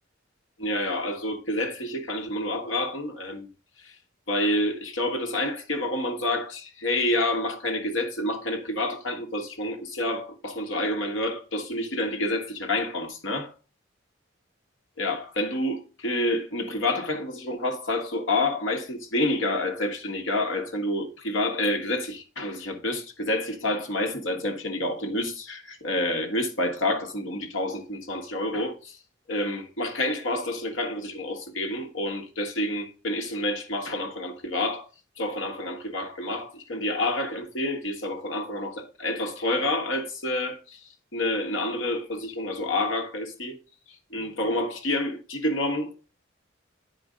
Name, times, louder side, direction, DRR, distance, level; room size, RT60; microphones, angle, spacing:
voice 1, 0.6-3.5 3.8-3.9 4.3-13.5 15.0-29.0 29.3-34.9 35.2-43.5 44.1-46.0, left 1 dB, 80° left, 1.6 m, -28 dB
9.8 x 5.1 x 5.0 m
head